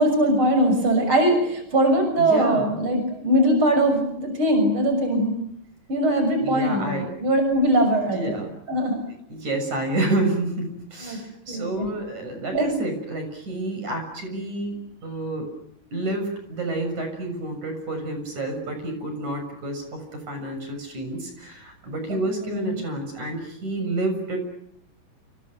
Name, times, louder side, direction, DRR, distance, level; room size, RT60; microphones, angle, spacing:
voice 1, 0.0-5.3 5.9-8.4 8.7-9.0 11.0-11.2 11.5-11.9 12.5-12.7 22.1-22.8, right 1 dB, 40° right, 6 dB, 7.2 m, -21 dB
voice 2, 2.2-2.8 6.4-7.1 8.1-8.6 9.3-15.5 15.9-24.4, right 2 dB, 60° right, 6 dB, 8.1 m, -29 dB
29.5 x 29.5 x 6.6 m, 0.71 s
omnidirectional pair, 3.8 m